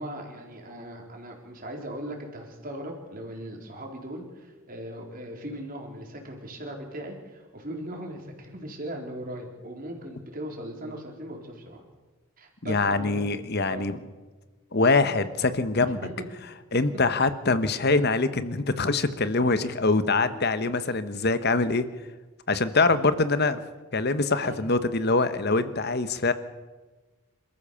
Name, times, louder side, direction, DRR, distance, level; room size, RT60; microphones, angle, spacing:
voice 1, 0.0-11.8 12.4-13.3 13.7-13.9 15.9-16.2 16.7-16.8 24.4-24.6, right 1 dB, 40° right, 1 dB, 4.0 m, -38 dB
voice 2, 12.6-14.0 14.7-16.0 16.7-21.8 22.5-23.6 23.9-26.3, left 3 dB, 50° left, 12 dB, 1.1 m, -24 dB
27.0 x 14.0 x 7.0 m, 1.3 s
head